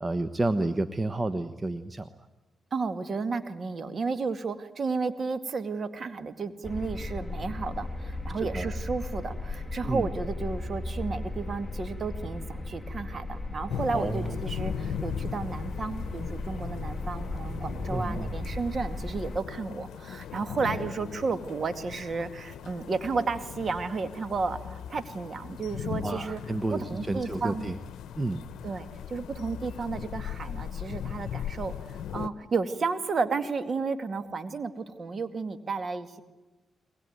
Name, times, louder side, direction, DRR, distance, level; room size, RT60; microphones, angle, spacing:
voice 1, 0.0-2.1 8.4-8.7 9.8-10.1 13.9-14.3 17.9-18.4 26.0-27.8 28.1-28.4, right 2 dB, 30° right, 10 dB, 1.2 m, -30 dB
voice 2, 2.7-26.4 26.7-27.7 28.6-31.7 32.1-36.2, right 4 dB, 50° right, 9 dB, 2.2 m, -32 dB
sound 1, 6.6-19.4, left 2 dB, 10° left, 2.4 m, -36 dB
sound 2, 13.7-32.3, left 9 dB, 85° left, 0.8 m, -39 dB
22.5 x 20.5 x 9.5 m, 1.1 s
cardioid pair, 65°, 0 cm